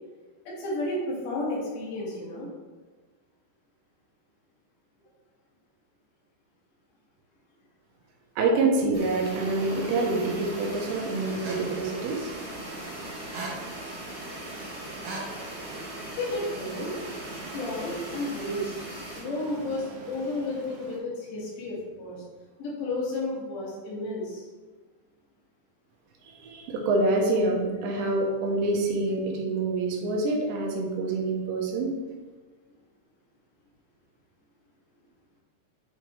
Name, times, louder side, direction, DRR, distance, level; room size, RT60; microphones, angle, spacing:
voice 1, 0.5-2.5 16.2-16.9 17.5-22.3 22.6-24.5, left 2 dB, 75° left, -6 dB, 4.2 m, -32 dB
voice 2, 8.4-12.3 26.2-31.9, right 2 dB, 85° right, 0 dB, 3.2 m, -26 dB
sound 1, 8.9-19.2, equal, 30° right, 1.5 m, -43 dB
sound 2, 9.2-21.0, right 2 dB, 70° right, 1.8 m, -40 dB
9.7 x 4.5 x 3.2 m, 1.4 s
omnidirectional pair, 5.0 m